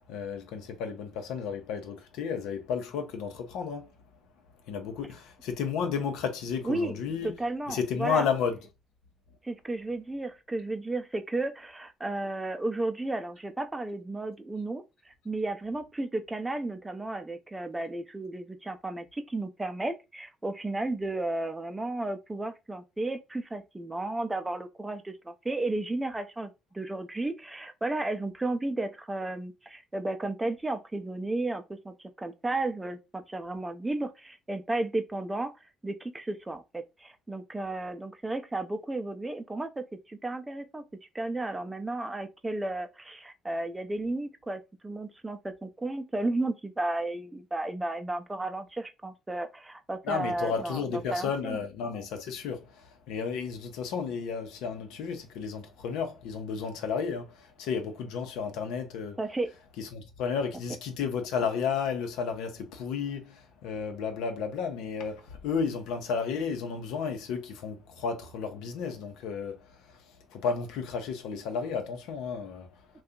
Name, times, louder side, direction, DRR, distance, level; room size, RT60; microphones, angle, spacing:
voice 1, 0.1-3.9 4.7-7.3 7.7-8.6 50.0-59.2 59.8-70.0 70.3-72.7, left 6 dB, 80° left, 0.7 m, -32 dB
voice 2, 6.6-7.0 7.2-8.3 9.4-35.5 35.8-40.8 41.1-51.6 59.2-59.5, right 2 dB, 15° right, 0.5 m, -33 dB
2.7 x 2.3 x 3.5 m
supercardioid pair, 85°, 0 cm